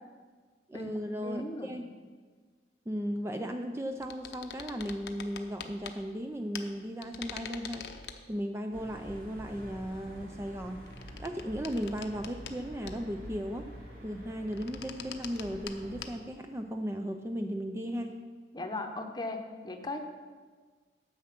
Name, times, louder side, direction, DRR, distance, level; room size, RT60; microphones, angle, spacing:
voice 1, 0.7-1.9 2.9-7.9 8.3-10.8 11.2-13.7 14.0-18.1, equal, 15° right, 5 dB, 0.4 m, -36 dB
voice 2, 1.2-1.8 18.5-20.0, left 2 dB, 25° left, 5 dB, 0.8 m, -37 dB
sound 1, 4.0-6.0 6.5-6.6 7.0-8.2 10.8-12.5 12.8-13.2 14.4-15.7 16.0-16.1, left 7 dB, 70° left, 0.7 m, -44 dB
sound 2, 8.7-16.1, equal, 55° right, 1.9 m, -47 dB
9.4 x 7.6 x 5.9 m, 1.5 s
head